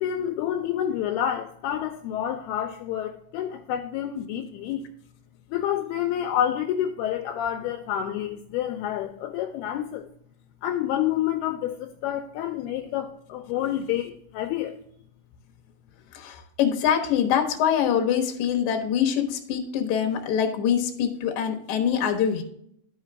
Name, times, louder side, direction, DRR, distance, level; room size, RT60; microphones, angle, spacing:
voice 1, 0.0-4.9 5.5-10.1 10.6-14.8, left 10 dB, 80° left, 2.4 m, -28 dB
voice 2, 16.1-22.4, left 8 dB, 65° left, 2.0 m, -24 dB
12.5 x 4.8 x 3.4 m
omnidirectional pair, 4.9 m